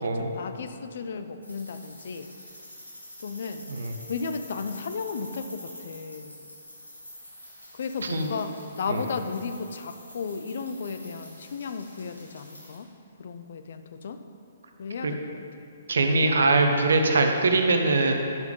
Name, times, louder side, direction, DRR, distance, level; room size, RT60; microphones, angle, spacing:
voice 1, 0.2-2.3 3.2-3.6 4.1-6.4 7.7-12.9 13.2-14.2 14.8-15.4, left 5 dB, 55° left, 9 dB, 0.5 m, -34 dB
sound 1, 1.4-12.8, left 1 dB, 85° left, 1.6 m, -46 dB
voice 2, 8.0-8.3 8.9-9.0 15.0-15.1 15.9-18.1, right 3 dB, 65° right, 4 dB, 0.8 m, -22 dB
10.5 x 5.7 x 3.8 m, 2.6 s
figure-of-eight pair, 125°, 0 cm